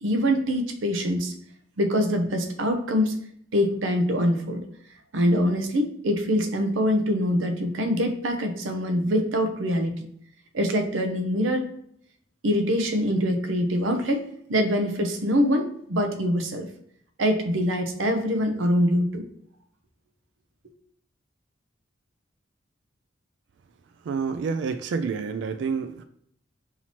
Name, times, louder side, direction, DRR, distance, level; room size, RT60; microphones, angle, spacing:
voice 1, 0.0-1.3 1.8-3.2 3.5-4.6 5.1-9.9 10.5-11.7 12.4-14.2 14.5-16.7 17.2-19.2, equal, 85° right, 5 dB, 0.7 m, -24 dB
voice 2, 24.0-26.0, right 5 dB, 65° right, 9 dB, 0.3 m, -28 dB
5.7 x 2.8 x 3.0 m, 0.67 s
head